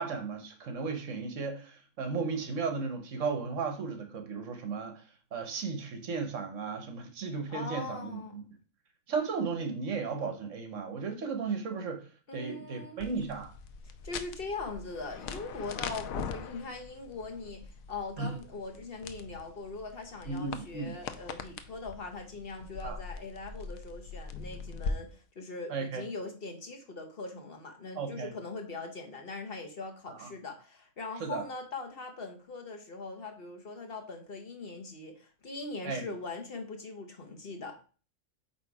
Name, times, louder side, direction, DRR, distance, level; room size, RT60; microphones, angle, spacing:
voice 1, 0.0-5.0 5.3-8.4 9.1-12.0 12.3-13.5 18.2-18.3 20.3-20.9 22.8-23.0 25.7-26.0 27.9-28.3 30.1-30.3 31.2-31.4 35.8-36.1, right 5 dB, 65° right, 6 dB, 1.3 m, -35 dB
voice 2, 7.5-8.4 12.3-13.0 14.0-37.8, left 3 dB, 45° left, 4 dB, 1.0 m, -41 dB
sound 1, 13.0-24.9, left 5 dB, 85° left, 1.1 m, -42 dB
8.5 x 2.9 x 4.7 m, 0.37 s
omnidirectional pair, 1.4 m